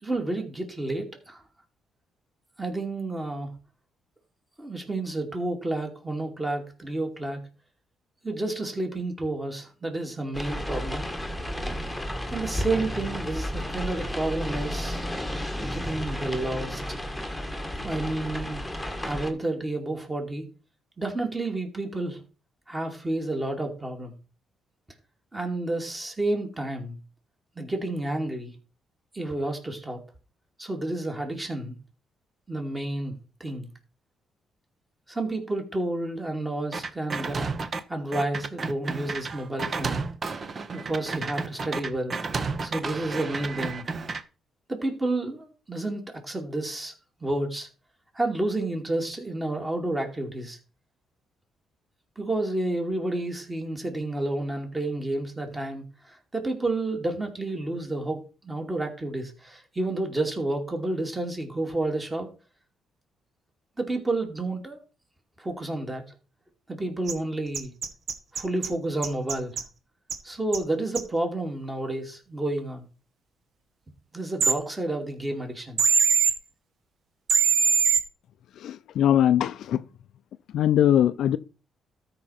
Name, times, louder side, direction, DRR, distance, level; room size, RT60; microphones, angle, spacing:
voice 1, 0.0-1.4 2.6-3.5 4.6-7.4 8.2-11.1 12.3-15.0 15.6-16.8 17.8-18.6 19.1-20.5 21.0-22.2 22.7-24.1 25.3-27.0 27.6-28.5 29.1-30.0 30.6-31.8 32.5-33.1 33.4-33.7 35.1-37.5 37.9-40.0 40.7-42.2 42.6-43.9 44.7-46.9 47.2-47.7 48.1-50.6 52.2-62.3 63.8-64.8 65.4-66.0 66.7-67.7 68.3-69.6 70.2-72.8 74.1-75.8, right 2 dB, 20° right, 2.7 m, -30 dB
sound 1, 10.3-19.3, equal, ahead, 1.5 m, -32 dB
sound 2, 36.7-37.8 38.1-44.2, right 4 dB, 40° right, 0.9 m, -32 dB
sound 3, 67.1-67.2 67.5-68.7 69.0-69.6 70.1-70.2 70.5-70.6 71.0-71.1 74.4-74.5 75.8-76.3 77.3-78.0, right 5 dB, 60° right, 1.5 m, -21 dB
voice 2, 78.6-79.8 80.5-81.4, left 10 dB, 75° left, 0.4 m, -21 dB
13.0 x 5.0 x 4.3 m
cardioid pair, 90°, 0 cm